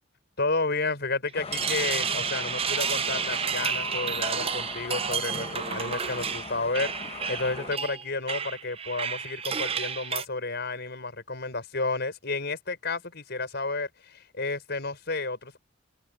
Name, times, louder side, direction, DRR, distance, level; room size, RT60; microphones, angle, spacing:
voice 1, 0.4-15.6, left 3 dB, 55° left, 5.9 m, -31 dB
sound 1, 1.3-7.8, left 4 dB, 30° left, 0.9 m, -39 dB
sound 2, 1.3-10.2, right 7 dB, 30° right, 0.6 m, -31 dB
head